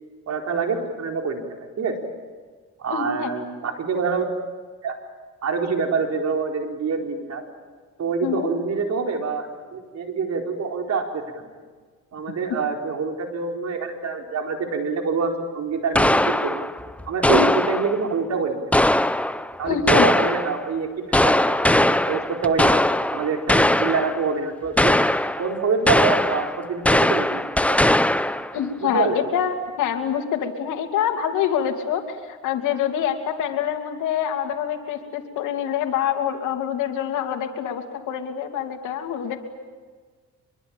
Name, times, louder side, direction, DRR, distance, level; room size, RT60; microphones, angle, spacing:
voice 1, 0.3-1.9 2.8-4.3 4.8-4.9 5.4-7.4 8.0-9.5 9.7-11.5 12.1-16.7 17.1-18.6 19.6-22.8 23.1-25.0 25.4-27.8 28.8-29.2, right 5 dB, 60° right, 3 dB, 4.5 m, -26 dB
voice 2, 2.9-3.3 8.2-8.5 17.3-17.5 19.6-20.1 28.5-39.4, left 9 dB, 85° left, 5 dB, 2.9 m, -26 dB
sound 1, 15.9-18.1 18.7-20.6 21.1-24.3 24.8-25.6 25.9-28.6, left 1 dB, 5° left, 0.8 m, -20 dB
25.5 x 23.0 x 8.9 m, 1.5 s
cardioid pair, 90°, 30 cm